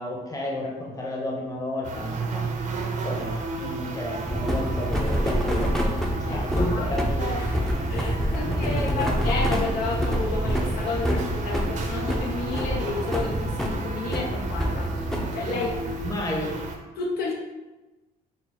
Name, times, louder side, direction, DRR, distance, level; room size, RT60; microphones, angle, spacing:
voice 1, 0.0-2.4 3.0-5.9 6.2-7.2 8.5-9.1 16.0-16.5, left 1 dB, 20° left, -2 dB, 1.0 m, -32 dB
sound 1, 1.8-16.8, right 3 dB, 45° right, 0.6 m, -32 dB
sound 2, 4.2-16.1, equal, ahead, 0.6 m, -27 dB
voice 2, 6.3-6.9 7.2-14.9 15.3-15.9 17.0-17.3, left 3 dB, 65° left, -1 dB, 0.6 m, -31 dB
4.0 x 2.0 x 4.4 m, 1.1 s
cardioid pair, 110°, 17 cm